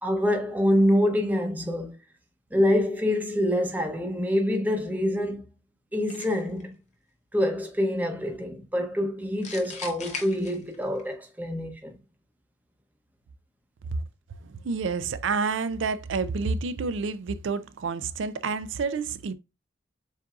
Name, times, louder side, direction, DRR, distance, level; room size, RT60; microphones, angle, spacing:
voice 1, 0.0-1.9 2.5-5.5 5.9-6.7 7.3-12.0, left 1 dB, 10° right, 0.7 m, -26 dB
sound 1, 6.1-6.6 9.4-11.0, left 4 dB, 35° left, 0.7 m, -39 dB
voice 2, 14.4-19.3, right 4 dB, 90° right, 0.4 m, -29 dB
7.2 x 2.6 x 2.4 m
head